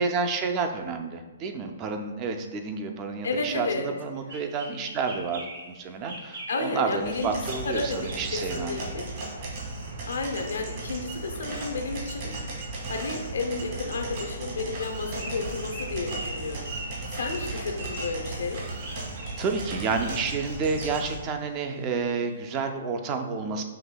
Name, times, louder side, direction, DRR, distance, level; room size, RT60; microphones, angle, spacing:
voice 1, 0.0-8.8 17.5-17.6 19.4-23.6, right 4 dB, 30° right, 5 dB, 0.3 m, -30 dB
voice 2, 3.2-3.9 6.5-9.1 10.1-12.3 12.9-18.6, left 3 dB, 85° left, 4 dB, 0.5 m, -32 dB
sound 1, 4.3-10.4 10.9-11.0 11.3-14.0 14.9-21.1 21.5-22.6, right 1 dB, 75° right, 1.2 m, -43 dB
sound 2, 7.0-21.2, right 2 dB, 50° right, 1.4 m, -36 dB
5.9 x 2.7 x 2.2 m, 1.1 s
hypercardioid pair, 145°, 0 cm